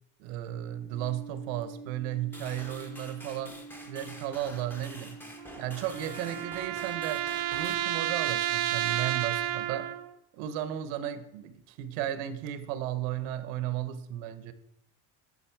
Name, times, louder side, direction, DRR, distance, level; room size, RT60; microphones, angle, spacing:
voice 1, 0.2-3.6 3.9-5.2 5.6-7.2 7.5-9.9 10.3-14.5, right 11 dB, 90° right, 13 dB, 0.9 m, -34 dB
sound 1, 0.9-9.9, right 4 dB, 40° left, 1.5 m, -49 dB
sound 2, 2.3-7.7, left 1 dB, 5° left, 0.5 m, -47 dB
sound 3, 5.4-10.1, right 14 dB, 55° right, 0.5 m, -31 dB
11.5 x 4.0 x 4.5 m, 0.81 s
cardioid pair, 175°, 41 cm